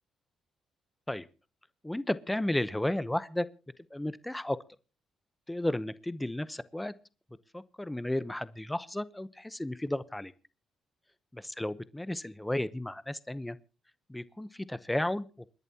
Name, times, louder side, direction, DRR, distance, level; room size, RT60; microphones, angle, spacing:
voice 1, 1.8-3.5 3.9-4.6 5.5-6.9 7.5-10.3 11.3-13.6 14.1-15.3, left 1 dB, 10° left, 16 dB, 0.8 m, -33 dB
28.5 x 11.0 x 2.9 m, 0.33 s
cardioid pair, 90°, 0 cm